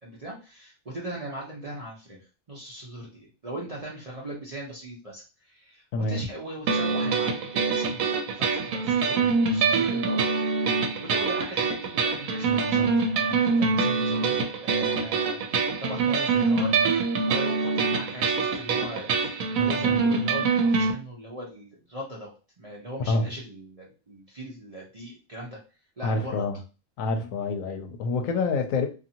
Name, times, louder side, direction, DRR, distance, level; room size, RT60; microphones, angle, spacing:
voice 1, 0.0-10.7 11.0-16.8 17.2-25.6 26.0-26.4, right 1 dB, 40° right, 0.6 m, -39 dB
sound 1, 6.7-20.9, right 4 dB, 80° right, 1.0 m, -25 dB
voice 2, 26.0-26.6 27.0-28.9, left 3 dB, 75° left, 0.9 m, -27 dB
2.6 x 2.6 x 2.7 m
omnidirectional pair, 1.4 m